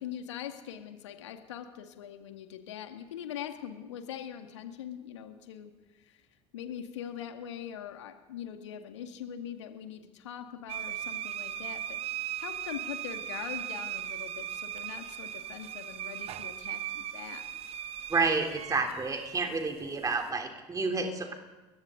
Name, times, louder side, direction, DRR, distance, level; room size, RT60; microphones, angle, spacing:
voice 1, 0.0-6.2 6.5-12.0 12.4-17.5, left 9 dB, 70° left, 6 dB, 2.1 m, -42 dB
sound 1, 10.7-20.3, right 10 dB, 40° right, 1.2 m, -38 dB
voice 2, 18.1-21.3, right 4 dB, 20° right, 4 dB, 3.5 m, -30 dB
29.5 x 22.5 x 3.9 m, 1.1 s
figure-of-eight pair, 70°, 15 cm